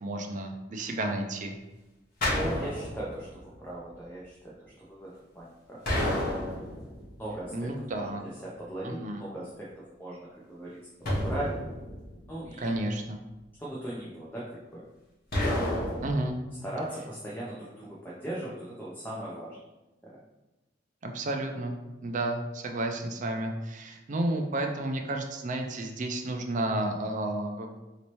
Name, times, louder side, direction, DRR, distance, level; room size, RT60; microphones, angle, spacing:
voice 1, 0.0-1.6 7.5-8.3 8.8-9.2 12.6-13.2 16.0-16.4 21.0-21.8 22.0-27.7, right 1 dB, 40° right, 3 dB, 0.4 m, -31 dB
sound 1, 2.2-3.4 5.9-7.1 11.0-12.5 15.3-16.3, left 1 dB, 55° left, 1.2 m, -30 dB
voice 2, 2.4-5.8 7.2-9.7 10.0-11.6 12.3-12.7 13.6-14.8 16.6-19.6 20.0-20.2, right 1 dB, 10° left, -6 dB, 0.5 m, -39 dB
3.1 x 2.9 x 3.0 m, 1.1 s
head